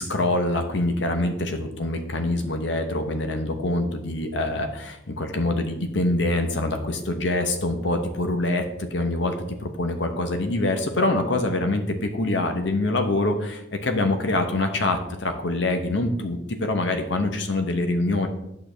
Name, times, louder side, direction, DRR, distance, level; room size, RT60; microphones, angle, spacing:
voice 1, 0.0-8.7 8.9-9.3 9.6-18.3, left 2 dB, 65° left, 5 dB, 0.9 m, -25 dB
8.5 x 6.9 x 3.4 m, 0.85 s
head